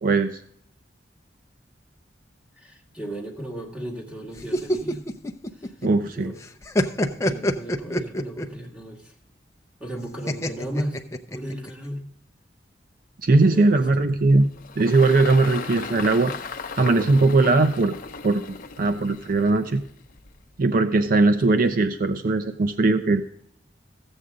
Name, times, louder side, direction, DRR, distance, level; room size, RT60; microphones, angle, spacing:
voice 1, 0.0-0.4 5.8-6.3 13.2-14.5 14.8-16.3 16.8-17.9 18.2-18.4 18.8-19.8 20.6-23.2, right 3 dB, 50° right, 9 dB, 0.5 m, -19 dB
voice 2, 2.6-5.1 5.6-5.7 6.1-6.4 7.2-9.1 9.8-11.0 11.3-12.1 13.4-14.0 21.5-21.6, right 1 dB, 5° right, -1 dB, 2.0 m, -35 dB
sound 1, 4.4-6.1 6.4-8.6 10.3-11.7, equal, 15° left, 0.6 m, -25 dB
Engine, 14.0-20.6, left 5 dB, 50° left, 0.7 m, -37 dB
14.5 x 8.0 x 3.7 m, 0.69 s
head